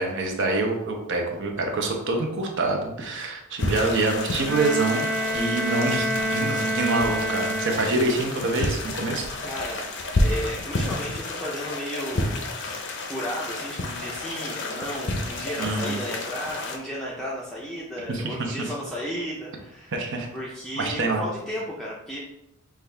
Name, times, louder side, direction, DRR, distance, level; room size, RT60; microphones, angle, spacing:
voice 1, 0.0-9.3 15.6-16.0 18.1-18.6 19.9-20.3 20.8-21.2, right 2 dB, 55° right, 2 dB, 0.8 m, -26 dB
sound 1, 3.6-16.8, left 2 dB, 55° left, 0.6 m, -30 dB
Bowed string instrument, 4.5-8.2, right 1 dB, 20° right, 1.4 m, -27 dB
voice 2, 6.0-6.3 9.4-9.8 10.1-12.4 12.7-12.8 13.1-20.0 20.3-22.2, equal, ahead, -6 dB, 0.5 m, -34 dB
5.9 x 2.4 x 3.3 m, 0.87 s
head